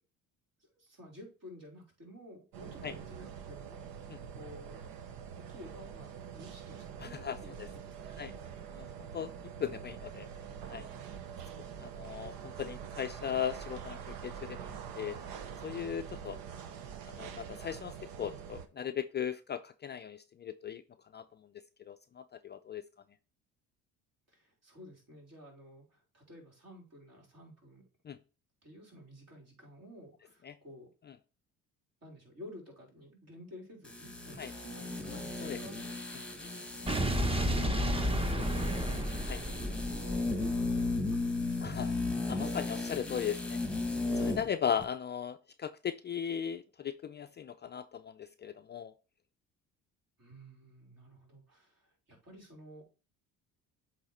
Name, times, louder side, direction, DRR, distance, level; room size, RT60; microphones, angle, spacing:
voice 1, 0.6-4.8 5.3-8.5 24.3-27.8 28.6-30.9 32.0-36.0 37.4-39.2 39.9-42.2 50.2-52.8, equal, 45° right, 0 dB, 3.6 m, -52 dB
sound 1, 2.5-18.7, right 8 dB, 75° right, 0.9 m, -45 dB
voice 2, 7.0-7.7 8.2-8.3 9.1-9.3 9.6-10.3 10.7-10.9 11.8-14.0 14.2-14.7 15.0-15.2 15.6-16.4 17.1-20.8 21.1-21.2 21.9-22.9 28.1-28.2 30.5-30.6 34.4-34.5 35.4-35.6 39.3-39.4 41.6-41.9 42.3-43.6 44.1-48.9, left 8 dB, 30° left, 10 dB, 0.4 m, -37 dB
sound 2, 33.8-44.5 44.8-44.9, left 3 dB, 5° left, 1.4 m, -35 dB
Explosion, 36.9-41.2, right 1 dB, 15° right, 1.0 m, -32 dB
8.0 x 3.3 x 4.2 m, 0.34 s
supercardioid pair, 70°, 36 cm